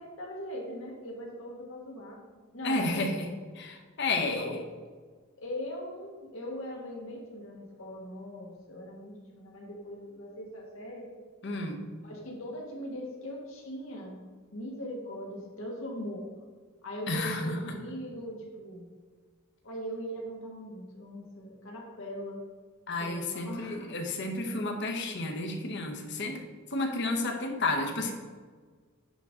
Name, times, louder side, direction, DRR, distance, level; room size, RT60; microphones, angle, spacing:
voice 1, 0.0-3.3 4.2-4.6 5.4-11.1 12.0-16.3 16.8-18.9 19.6-22.4 23.0-24.0, equal, 80° left, -1 dB, 1.7 m, -40 dB
voice 2, 2.6-3.2 3.6-4.5 11.4-11.8 17.1-17.7 22.9-26.4 26.7-28.1, left 2 dB, 60° left, 3 dB, 1.0 m, -31 dB
10.5 x 3.8 x 3.7 m, 1.5 s
head